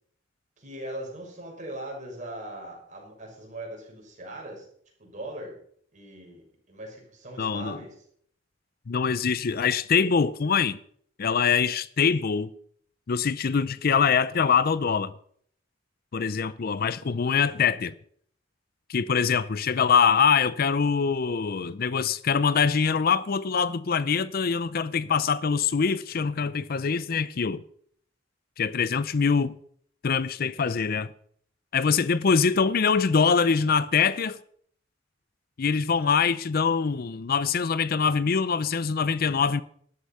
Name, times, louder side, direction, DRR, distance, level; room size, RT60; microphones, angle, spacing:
voice 1, 0.6-4.7 5.0-5.6 5.9-8.0, right 1 dB, 40° right, 5.6 m, -40 dB
voice 2, 7.4-7.8 8.9-10.8 11.2-12.5 13.1-15.1 16.1-17.9 18.9-27.6 28.6-29.6 30.0-31.1 31.7-34.4 35.6-39.6, left 6 dB, 50° left, 0.5 m, -24 dB
13.0 x 11.5 x 5.6 m
head